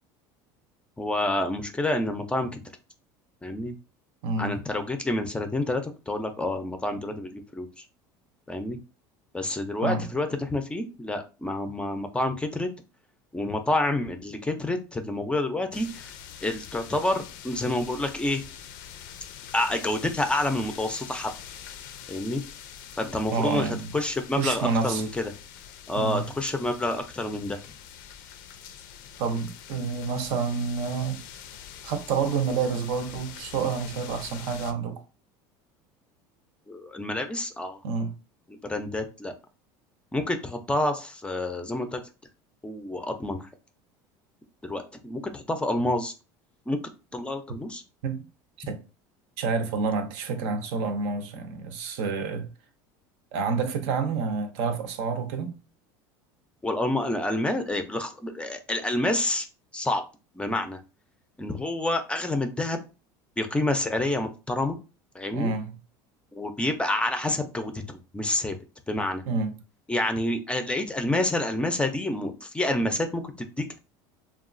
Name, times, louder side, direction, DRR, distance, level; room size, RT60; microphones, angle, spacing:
voice 1, 1.0-2.6 3.4-3.7 4.4-7.8 8.5-8.8 9.3-12.7 13.3-16.1 16.4-18.4 19.5-21.3 22.1-22.4 23.0-23.7 23.9-25.3 25.9-27.6 36.7-37.8 38.5-39.3 40.1-42.0 42.6-43.5 44.6-46.1 46.7-46.8 47.1-47.8 56.6-59.5 59.7-60.0 60.4-60.8 61.4-62.8 63.4-64.8 65.1-65.5 66.3-68.6 68.9-69.2 69.9-73.8, left 1 dB, 10° left, 0.4 m, -28 dB
voice 2, 4.2-4.6 9.8-10.1 23.3-23.9 24.4-25.0 25.9-26.2 29.2-31.3 31.8-35.0 37.8-38.1 48.0-48.2 48.7-48.8 49.4-52.5 53.3-55.5 65.3-65.8 69.3-69.6, right 5 dB, 70° right, 0.6 m, -28 dB
sound 1, 15.7-34.7, left 9 dB, 85° left, 0.4 m, -44 dB
2.9 x 2.3 x 2.5 m
supercardioid pair, 115°, 11 cm